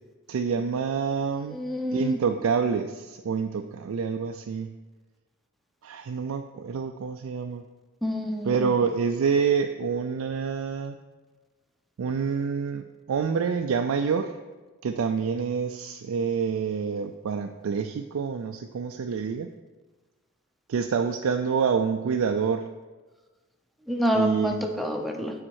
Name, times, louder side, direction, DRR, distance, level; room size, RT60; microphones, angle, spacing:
voice 1, 0.3-1.6 1.9-4.8 5.8-7.6 8.4-11.0 12.0-14.3 14.8-19.5 20.7-22.7 24.1-24.7, right 6 dB, 80° right, 5 dB, 0.4 m, -27 dB
voice 2, 1.5-2.2 8.0-8.5 23.9-25.3, equal, ahead, 2 dB, 0.7 m, -27 dB
8.8 x 4.2 x 4.6 m, 1.3 s
head